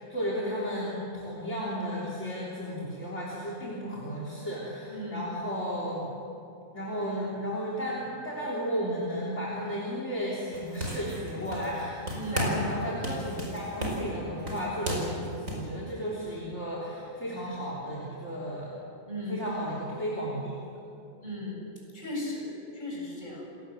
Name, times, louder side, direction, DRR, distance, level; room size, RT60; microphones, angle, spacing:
voice 1, 0.0-6.1 6.7-12.0 12.3-18.7 19.3-20.8, equal, 55° left, -5 dB, 4.0 m, -34 dB
voice 2, 4.9-5.3 12.1-12.6 13.7-14.0 14.5-14.6 19.1-19.5 21.2-21.7 21.9-23.6, left 1 dB, 35° left, -3 dB, 7.7 m, -37 dB
sound 1, 10.5-11.8 12.1-12.7 13.0-15.7, right 1 dB, 75° right, 5.3 m, -34 dB
29.0 x 18.5 x 7.8 m, 2.6 s
omnidirectional pair, 1.4 m